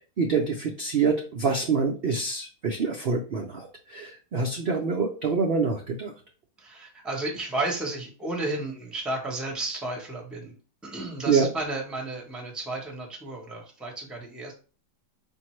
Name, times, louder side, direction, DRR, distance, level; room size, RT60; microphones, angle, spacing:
voice 1, 0.2-6.1 11.3-11.5, right 5 dB, 70° right, 0 dB, 0.5 m, -26 dB
voice 2, 6.6-10.6 10.8-14.5, right 2 dB, ahead, 0 dB, 0.6 m, -33 dB
5.3 x 2.7 x 3.1 m, 0.36 s
omnidirectional pair, 1.8 m